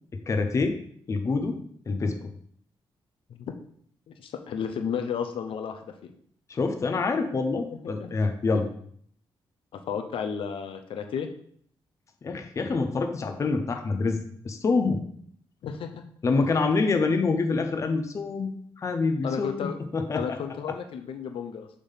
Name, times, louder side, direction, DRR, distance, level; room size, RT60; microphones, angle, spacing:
voice 1, 0.1-0.8 1.1-1.6 1.9-2.3 6.5-8.7 12.2-14.2 14.4-15.0 16.2-20.4, left 4 dB, 30° left, 5 dB, 0.7 m, -26 dB
voice 2, 4.1-6.1 7.8-8.1 9.7-11.3 15.6-16.0 19.2-19.8 20.2-21.7, left 7 dB, 70° left, 6 dB, 0.7 m, -33 dB
7.0 x 3.7 x 5.7 m, 0.62 s
wide cardioid pair, 145°, 9 cm